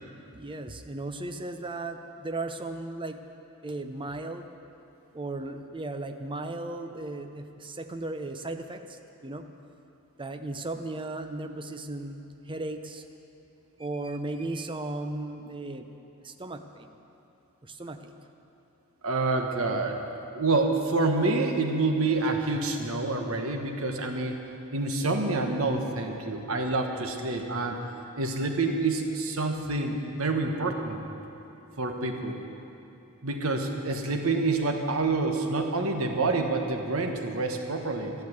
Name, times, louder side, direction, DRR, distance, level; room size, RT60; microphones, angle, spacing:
voice 1, 0.3-3.2 3.6-4.4 5.1-9.4 10.2-13.0 13.8-15.9 16.2-16.9 17.6-18.1, right 2 dB, 25° right, 7 dB, 0.7 m, -36 dB
voice 2, 19.0-20.0 20.3-24.4 24.7-27.8 28.2-31.0 31.8-32.4 33.2-38.1, right 3 dB, 70° right, 4 dB, 1.4 m, -27 dB
13.0 x 11.5 x 8.1 m, 2.8 s
head